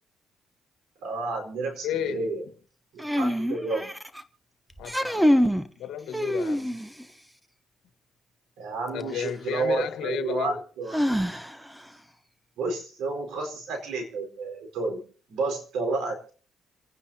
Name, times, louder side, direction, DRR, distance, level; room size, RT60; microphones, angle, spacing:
voice 1, 1.0-2.4 2.9-3.9 8.6-11.3 12.6-15.0 15.3-16.3, right 3 dB, 85° right, 4.4 m, -31 dB
voice 2, 1.8-2.3 4.8-6.8 8.9-10.6, left 9 dB, 80° left, 1.4 m, -33 dB
sound 1, 3.0-4.2 4.8-5.7 6.1-7.0 9.0-9.1 10.9-11.8, equal, 5° right, 0.9 m, -25 dB
28.5 x 9.8 x 2.8 m
cardioid pair, 90°, 0 cm